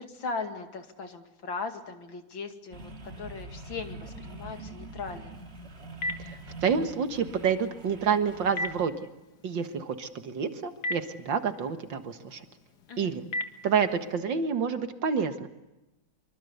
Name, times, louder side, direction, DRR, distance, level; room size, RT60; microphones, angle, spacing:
voice 1, 0.0-5.3 12.9-13.1, left 4 dB, 80° left, 6 dB, 3.0 m, -38 dB
sound 1, 2.7-8.8, right 2 dB, 35° right, 2.2 m, -44 dB
Telephone, 5.3-14.2, left 1 dB, 55° left, 2.2 m, -41 dB
voice 2, 6.2-8.9 9.4-12.5 13.0-13.2 13.6-15.5, right 6 dB, 70° right, 8 dB, 2.3 m, -28 dB
25.0 x 24.5 x 8.2 m, 0.98 s
omnidirectional pair, 2.1 m